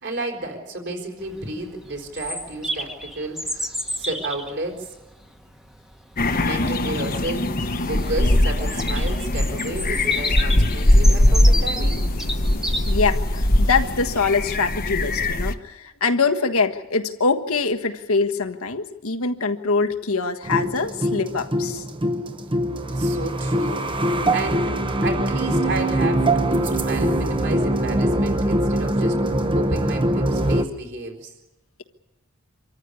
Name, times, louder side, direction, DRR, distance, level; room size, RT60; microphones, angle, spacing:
voice 1, 0.0-3.7 4.0-4.9 6.3-7.5 7.8-12.1 22.9-23.8 24.3-24.7 25.0-31.3, right 2 dB, 55° right, 3 dB, 4.4 m, -31 dB
Bird vocalization bird call bird song, 1.2-13.9, equal, ahead, 1.3 m, -33 dB
sound 1, 6.2-15.5, left 1 dB, 40° left, 1.1 m, -20 dB
voice 2, 12.9-21.8, left 4 dB, 70° left, 6 dB, 1.4 m, -23 dB
sound 2, 20.4-30.6, right 1 dB, 25° right, 1.0 m, -22 dB
26.0 x 14.0 x 9.9 m, 1.0 s
head